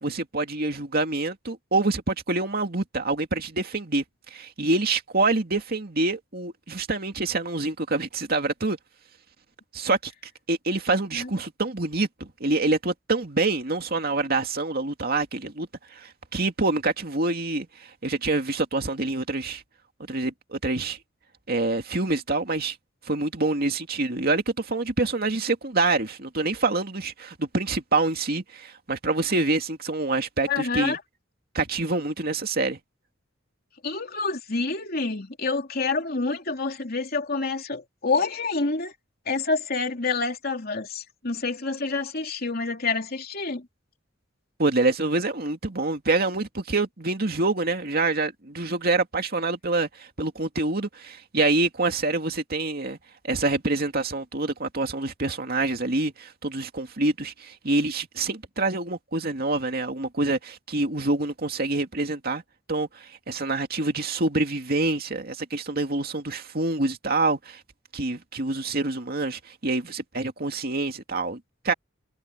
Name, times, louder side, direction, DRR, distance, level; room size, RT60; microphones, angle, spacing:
voice 1, 0.0-4.0 4.3-8.8 9.7-10.1 10.5-19.6 20.1-21.0 21.5-22.8 23.1-31.0 31.5-32.8 44.6-53.0 53.2-62.4 62.7-67.6 67.9-71.4 71.6-71.7, right 2 dB, 55° right, 2.4 m, -26 dB
voice 2, 30.5-31.0 33.8-38.9 39.3-43.7, left 4 dB, 50° left, 3.1 m, -28 dB
head